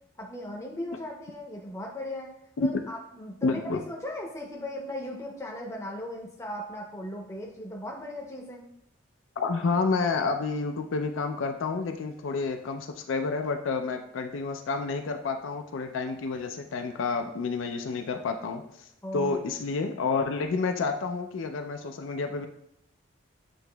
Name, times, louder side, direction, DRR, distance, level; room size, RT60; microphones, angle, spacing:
voice 1, 0.2-2.3 2.6-8.6 19.0-19.4, left 1 dB, 15° left, -1 dB, 0.6 m, -37 dB
voice 2, 3.4-3.8 9.4-22.5, left 4 dB, 70° left, 5 dB, 0.4 m, -29 dB
7.7 x 2.9 x 2.2 m, 0.76 s
head